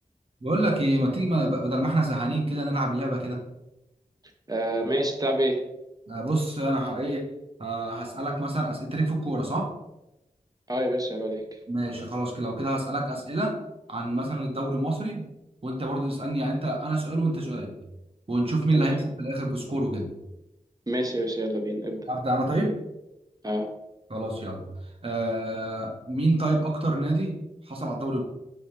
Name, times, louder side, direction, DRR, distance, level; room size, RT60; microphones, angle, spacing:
voice 1, 0.4-3.4 6.1-7.3 7.6-9.7 11.7-13.5 13.9-15.2 15.6-17.8 18.3-20.1 22.1-22.7 24.1-24.7 25.0-27.4 27.7-28.2, right 1 dB, 40° right, 0 dB, 1.2 m, -27 dB
voice 2, 4.5-5.6 10.7-11.4 18.7-19.0 20.9-22.0 23.4-23.7, right 1 dB, 25° right, 3 dB, 0.8 m, -27 dB
5.3 x 3.3 x 2.9 m, 0.93 s
wide cardioid pair, 50°, 14 cm